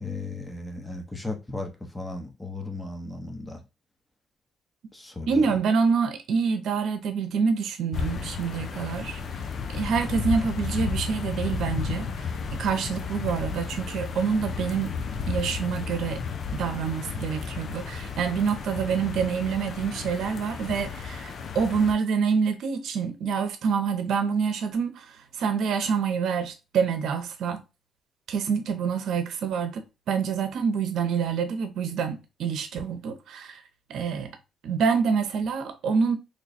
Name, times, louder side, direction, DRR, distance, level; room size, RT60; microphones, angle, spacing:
voice 1, 0.0-3.6 4.9-5.6, left 2 dB, 10° left, 0.9 m, -36 dB
voice 2, 5.3-9.2 9.7-14.9 15.3-16.2 16.5-27.6 28.3-33.6 33.9-34.3 34.6-36.2, right 6 dB, 75° right, 0.8 m, -27 dB
sound 1, 7.9-21.9, left 5 dB, 55° left, 0.5 m, -33 dB
3.2 x 2.2 x 4.1 m
cardioid pair, 90°, 0 cm